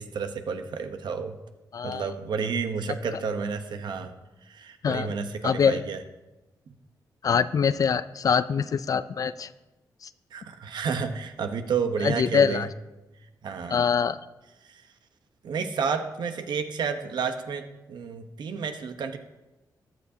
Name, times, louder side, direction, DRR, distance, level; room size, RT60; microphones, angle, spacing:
voice 1, 0.0-1.4 1.8-4.1 4.4-6.0 10.3-12.7 13.4-13.8 14.7-14.8 15.4-19.2, right 5 dB, 80° right, 7 dB, 0.9 m, -31 dB
voice 2, 1.7-2.1 4.8-5.1 5.4-5.8 7.2-9.5 12.0-12.7 13.7-14.2, left 6 dB, 55° left, 15 dB, 0.4 m, -24 dB
15.0 x 11.5 x 2.8 m, 1.0 s
wide cardioid pair, 110°, 7 cm